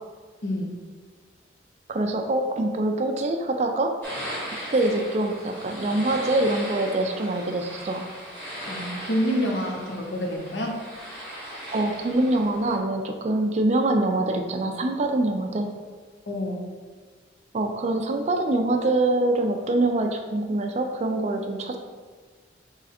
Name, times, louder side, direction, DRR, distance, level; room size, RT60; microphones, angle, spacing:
voice 1, 0.4-0.8 8.7-10.8 16.3-16.7, equal, 60° left, 0 dB, 0.8 m, -28 dB
voice 2, 1.9-3.9 4.7-8.1 11.7-15.7 17.5-21.8, right 2 dB, 35° right, 4 dB, 0.3 m, -24 dB
sound 1, 4.0-12.8, equal, 10° left, 1.2 m, -38 dB
3.7 x 3.2 x 4.2 m, 1.5 s
head